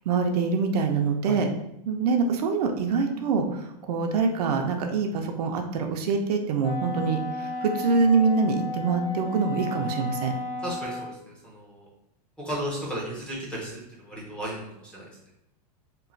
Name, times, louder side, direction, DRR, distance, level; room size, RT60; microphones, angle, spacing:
voice 1, 0.1-1.5 1.9-3.6 3.9-10.3, right 4 dB, 70° right, 4 dB, 0.5 m, -25 dB
Wind instrument woodwind instrument, 6.6-11.1, left 2 dB, 55° left, 0.9 m, -34 dB
voice 2, 10.6-11.9 12.4-15.1, equal, 5° left, -5 dB, 0.5 m, -35 dB
3.0 x 2.1 x 2.5 m, 0.80 s
supercardioid pair, 155°, 21 cm